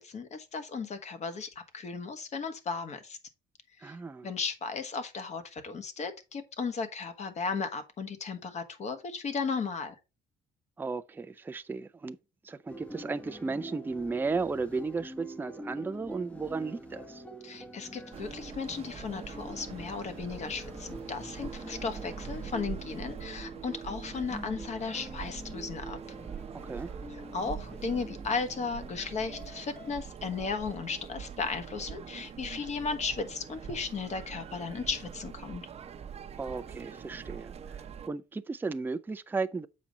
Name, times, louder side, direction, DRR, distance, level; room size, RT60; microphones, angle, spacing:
voice 1, 0.0-3.2 3.8-4.0 4.2-9.9 17.4-26.0 27.3-35.6, left 5 dB, 45° left, 1.4 m, -35 dB
voice 2, 3.8-4.3 10.8-12.2 12.4-17.2 26.6-26.9 36.4-39.7, right 4 dB, 10° right, 0.5 m, -35 dB
sound 1, 12.7-29.9, equal, 10° left, 0.9 m, -45 dB
sound 2, 18.1-38.1, right 7 dB, 40° right, 0.8 m, -44 dB
7.4 x 5.1 x 4.1 m
cardioid pair, 110°, 17 cm